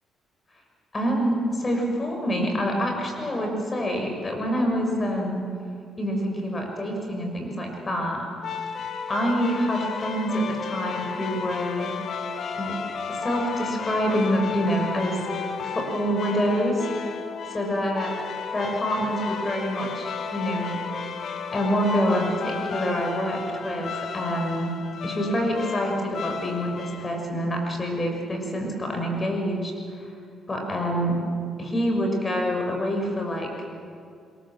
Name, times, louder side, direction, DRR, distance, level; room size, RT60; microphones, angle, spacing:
voice 1, 0.9-5.5 6.0-8.3 9.1-11.9 12.6-12.7 13.1-15.2 15.6-16.9 17.5-18.1 18.5-20.8 21.5-24.7 25.0-30.0 30.5-31.2 31.6-33.7, equal, 25° left, 2 dB, 6.2 m, -26 dB
sound 1, 8.4-27.3, left 6 dB, 60° left, 1.6 m, -33 dB
26.5 x 23.0 x 7.6 m, 2.4 s
cardioid pair, 90°, 0 cm